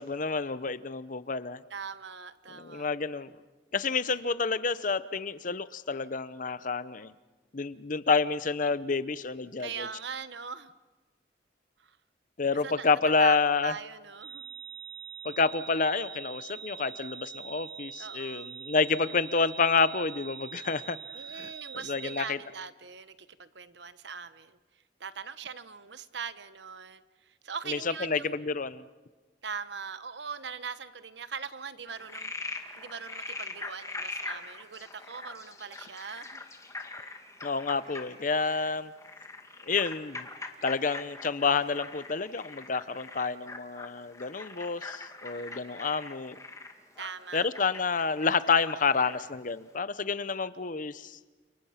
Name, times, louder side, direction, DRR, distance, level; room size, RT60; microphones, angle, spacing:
voice 1, 0.0-1.6 2.5-3.3 3.7-7.1 7.5-9.9 12.4-13.7 15.2-21.0 21.3-21.5 21.9-22.4 27.7-28.8 37.4-38.9 39.6-40.3 40.6-46.4 47.3-51.2, left 4 dB, 45° left, 15 dB, 0.8 m, -29 dB
voice 2, 1.7-2.9 4.1-4.2 9.6-10.7 11.8-12.0 12.6-14.5 18.0-18.5 21.1-24.6 25.0-28.4 29.4-36.4 37.1-37.2 45.3-45.8 47.0-47.5, right 6 dB, 70° right, 13 dB, 1.1 m, -41 dB
sound 1, 14.2-22.3, right 8 dB, 25° right, 0.9 m, -44 dB
Frog, 31.9-49.3, left 3 dB, 15° left, 2.0 m, -42 dB
30.0 x 28.0 x 5.8 m, 1.2 s
head